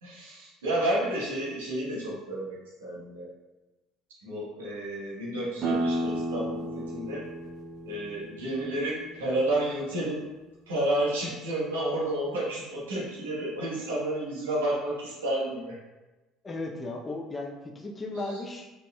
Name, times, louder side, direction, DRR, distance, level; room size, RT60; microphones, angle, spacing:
voice 1, 0.0-3.3 4.2-7.2 7.8-10.2 10.7-15.8, right 1 dB, 90° right, -7 dB, 1.4 m, -31 dB
sound 1, 5.6-11.0, right 1 dB, 45° right, 1.1 m, -34 dB
voice 2, 16.4-18.7, left 2 dB, 25° left, 1 dB, 0.8 m, -35 dB
4.3 x 3.9 x 2.4 m, 1.1 s
hypercardioid pair, 65°, 0 cm